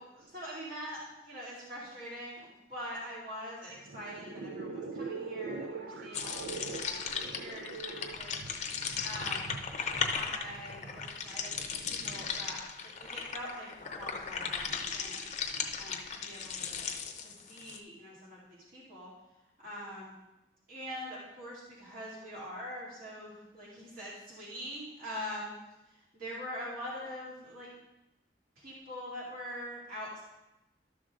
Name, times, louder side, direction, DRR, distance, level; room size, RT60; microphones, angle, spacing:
voice 1, 0.0-9.5 10.1-15.3 15.8-16.9 17.2-19.1 19.6-20.1 20.7-25.5 26.1-27.8 28.6-30.2, equal, 50° right, -7 dB, 2.5 m, -44 dB
sound 1, 3.7-12.5, right 4 dB, 75° right, 0.6 m, -43 dB
sound 2, 6.1-17.8, left 6 dB, 40° left, 0.7 m, -37 dB
12.5 x 6.2 x 3.7 m, 0.95 s
head